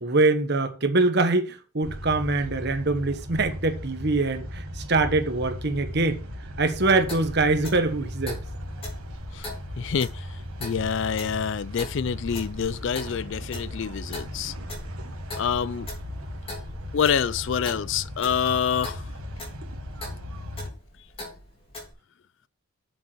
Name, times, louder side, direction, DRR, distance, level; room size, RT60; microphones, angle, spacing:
voice 1, 0.0-6.2 6.6-8.4, right 3 dB, 50° right, 1.2 m, -23 dB
sound 1, 1.8-20.7, equal, 85° right, 1.6 m, -37 dB
Clock, 7.0-21.9, left 1 dB, 25° left, 2.9 m, -42 dB
voice 2, 9.8-10.1 10.6-14.5 15.4-15.9 16.9-19.0, left 7 dB, 60° left, 0.4 m, -26 dB
8.2 x 6.9 x 4.4 m
head